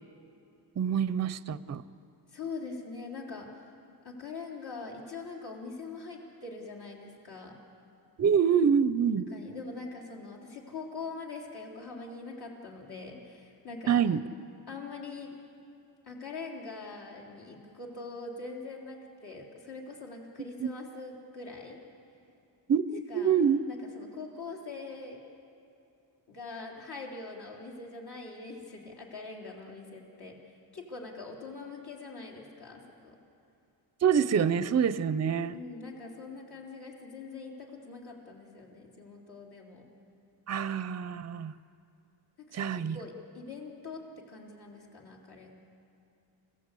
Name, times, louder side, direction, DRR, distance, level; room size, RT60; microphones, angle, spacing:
voice 1, 0.8-1.8 8.2-9.3 13.9-14.2 20.6-20.7 22.7-23.6 34.0-35.6 40.5-41.5 42.5-43.0, right 7 dB, 40° right, 16 dB, 0.5 m, -26 dB
voice 2, 2.3-3.7 4.0-7.5 9.3-14.0 14.7-15.4 16.0-21.8 23.1-23.4 23.7-25.2 26.3-33.2 35.5-39.8 42.4-45.6, left 4 dB, 65° left, -1 dB, 3.6 m, -43 dB
29.5 x 16.0 x 8.3 m, 2.6 s
wide cardioid pair, 175°, 42 cm